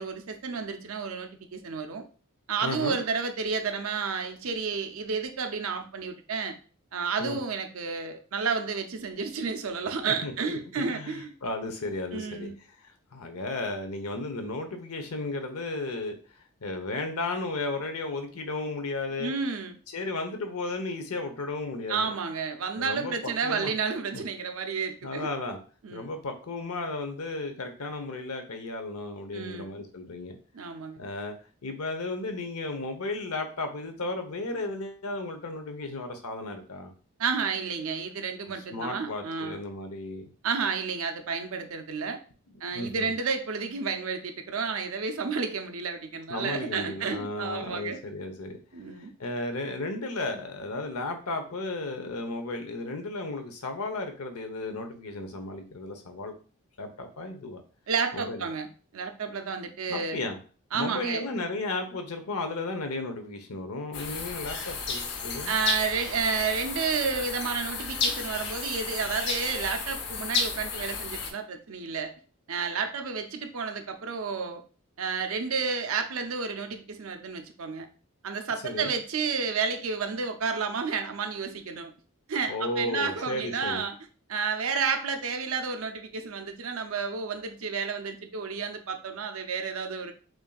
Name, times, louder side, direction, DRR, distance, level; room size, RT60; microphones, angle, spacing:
voice 1, 0.0-2.1 2.5-6.6 6.9-11.3 12.1-12.5 19.2-19.8 21.9-25.3 25.8-26.1 29.3-29.7 30.5-31.0 37.2-39.6 40.4-42.2 42.6-48.0 48.7-49.1 57.9-58.7 58.9-60.2 60.7-61.3 65.5-72.1 72.5-74.6 75.0-77.9 78.2-81.9 82.3-83.9 84.3-90.1, right 5 dB, 70° right, 6 dB, 0.6 m, -31 dB
voice 2, 2.6-3.0 7.2-7.4 10.1-12.5 12.8-19.3 19.9-22.1 22.8-23.7 24.1-24.2 25.0-25.6 25.9-30.4 31.0-31.3 31.6-36.9 38.6-40.3 42.7-43.1 46.3-48.6 48.9-56.3 56.8-57.6 58.1-58.4 59.9-60.4 60.7-65.5 78.6-78.9 82.5-83.8, left 2 dB, 90° left, 6 dB, 0.8 m, -34 dB
sound 1, 63.9-71.3, left 4 dB, 50° left, 0.6 m, -32 dB
6.0 x 2.6 x 2.3 m, 0.38 s
head